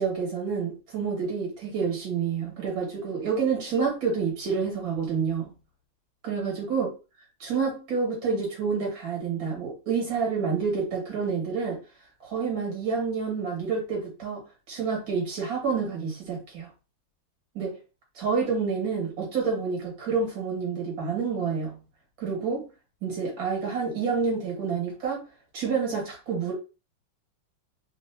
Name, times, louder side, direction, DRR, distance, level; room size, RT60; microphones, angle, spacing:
voice 1, 0.0-5.5 6.2-6.9 7.4-11.8 12.2-14.4 14.7-16.7 17.5-17.8 18.1-21.8 22.2-22.7 23.0-25.2 25.5-26.5, right 5 dB, 70° right, 3.0 m, -28 dB
4.6 x 2.9 x 2.9 m
omnidirectional pair, 2.2 m